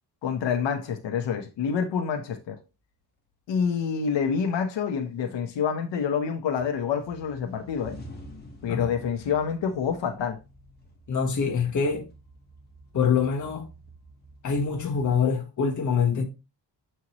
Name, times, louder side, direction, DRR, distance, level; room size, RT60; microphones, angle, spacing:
voice 1, 0.2-2.6 3.5-8.0 8.6-10.4, left 7 dB, 85° left, 1.0 m, -27 dB
sound 1, 3.3-3.4 4.0-4.7 5.1-6.2 6.5-15.2, right 1 dB, 25° left, 1.4 m, -49 dB
voice 2, 11.1-12.1 12.9-13.7 14.4-16.2, left 6 dB, 45° left, 1.3 m, -25 dB
7.3 x 4.6 x 3.0 m
wide cardioid pair, 165°, 43 cm